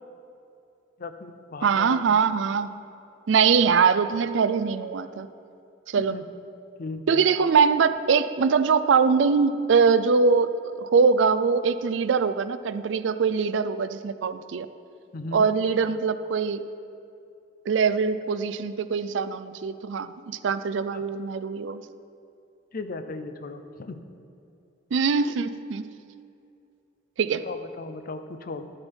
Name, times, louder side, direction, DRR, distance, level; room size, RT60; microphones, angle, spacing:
voice 1, 1.0-2.2 6.1-6.3 6.8-7.2 15.1-15.5 20.9-21.0 22.7-24.1 27.4-28.7, left 3 dB, 50° left, 9 dB, 0.6 m, -37 dB
voice 2, 1.6-2.7 3.3-5.3 5.9-6.1 7.1-14.7 15.3-16.6 17.7-21.8 24.9-25.8 27.2-27.4, right 5 dB, 70° right, 12 dB, 0.4 m, -22 dB
12.0 x 7.7 x 4.5 m, 2.6 s
head